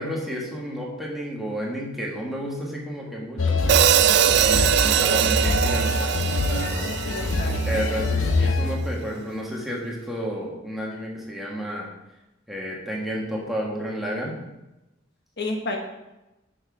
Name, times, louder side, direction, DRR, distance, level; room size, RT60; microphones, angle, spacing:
voice 1, 0.0-6.9 7.7-11.9 12.5-14.4, equal, ahead, -4 dB, 1.5 m, -31 dB
sound 1, 3.4-8.8, left 2 dB, 80° left, 0.7 m, -24 dB
Hi-hat, 3.7-7.9, right 10 dB, 55° right, 0.3 m, -21 dB
voice 2, 7.0-7.8 15.4-15.8, left 2 dB, 55° left, 2 dB, 1.0 m, -31 dB
6.4 x 6.2 x 4.7 m, 0.98 s
head